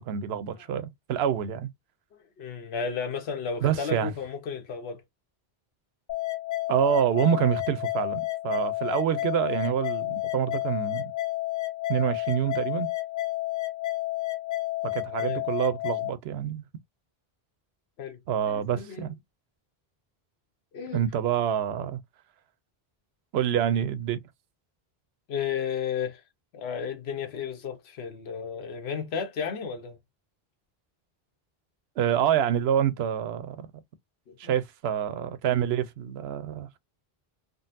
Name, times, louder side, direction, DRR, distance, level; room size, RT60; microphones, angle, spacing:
voice 1, 0.0-1.7 3.6-4.1 6.7-11.1 11.9-12.9 14.8-16.6 18.3-19.2 20.9-22.0 23.3-24.2 32.0-33.7 34.4-36.8, right 9 dB, 85° right, 0.8 m, -27 dB
voice 2, 2.1-5.0 15.2-15.4 18.0-19.1 20.7-21.1 25.3-26.2 26.5-30.0 34.3-34.5, left 6 dB, 90° left, 1.0 m, -33 dB
sound 1, 6.1-16.1, left 17 dB, 60° left, 0.7 m, -31 dB
3.8 x 2.0 x 2.5 m
omnidirectional pair, 1.0 m